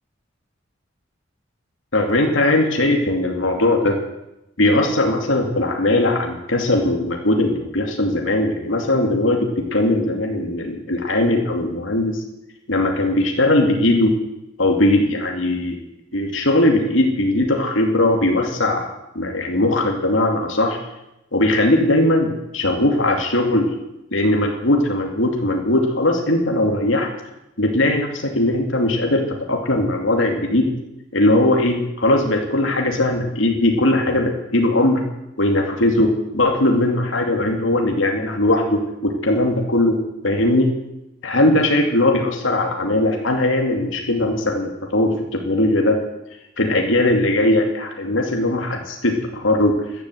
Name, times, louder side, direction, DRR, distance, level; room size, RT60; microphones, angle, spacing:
voice 1, 1.9-4.0 4.6-12.2 12.7-14.1 14.6-15.8 16.1-18.9 19.1-20.8 21.3-23.7 24.1-27.1 27.6-30.7 31.1-35.0 35.4-40.0 40.2-40.7 41.2-46.0 46.6-49.7, left 1 dB, 75° left, 2 dB, 2.6 m, -19 dB
15.5 x 12.0 x 7.9 m, 0.90 s
head